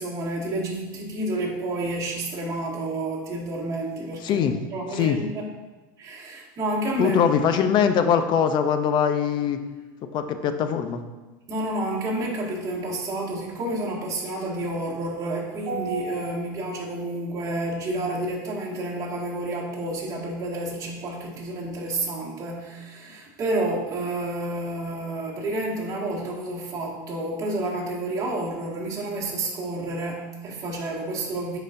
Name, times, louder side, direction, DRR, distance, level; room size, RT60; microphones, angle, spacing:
voice 1, 0.0-5.5 6.0-7.2 7.5-7.6 11.5-31.6, right 2 dB, 35° right, -5 dB, 1.9 m, -30 dB
voice 2, 4.2-4.6 4.9-5.2 7.0-9.6 10.1-11.0, left 7 dB, 45° left, 8 dB, 0.6 m, -22 dB
9.8 x 4.1 x 2.6 m, 1.2 s
supercardioid pair, 110°, 11 cm